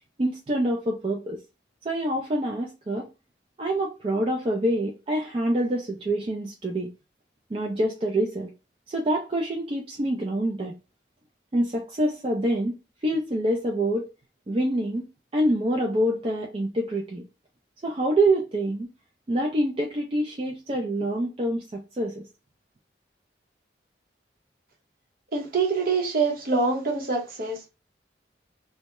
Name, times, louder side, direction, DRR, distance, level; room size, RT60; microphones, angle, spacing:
voice 1, 0.2-1.4 1.8-3.1 3.6-6.9 7.5-8.5 8.9-10.7 11.5-12.7 13.0-14.1 14.5-15.0 15.3-17.2 17.8-18.9 19.3-22.2, right 1 dB, 30° right, 0.4 m, -26 dB
voice 2, 25.3-27.7, right 4 dB, 50° right, 0.7 m, -25 dB
2.2 x 2.0 x 2.8 m
head